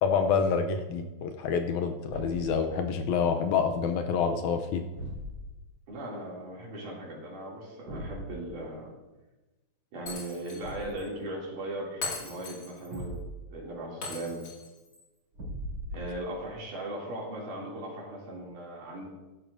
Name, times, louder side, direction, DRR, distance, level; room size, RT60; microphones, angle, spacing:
voice 1, 0.0-4.8, left 6 dB, 75° left, 6 dB, 1.9 m, -27 dB
Thump thud, 2.0-2.6 4.9-5.6 7.9-8.3 10.6-11.1 12.9-13.5 15.3-16.3, equal, 40° right, 3.4 m, -39 dB
voice 2, 5.9-8.9 9.9-13.3 13.5-14.4 15.9-19.1, right 1 dB, 75° right, -4 dB, 4.2 m, -38 dB
Shatter, 10.1-10.7 11.0-11.1 12.0-13.0 14.0-15.0, left 3 dB, 40° left, 2.7 m, -39 dB
14.5 x 11.0 x 2.6 m, 1.1 s
omnidirectional pair, 3.7 m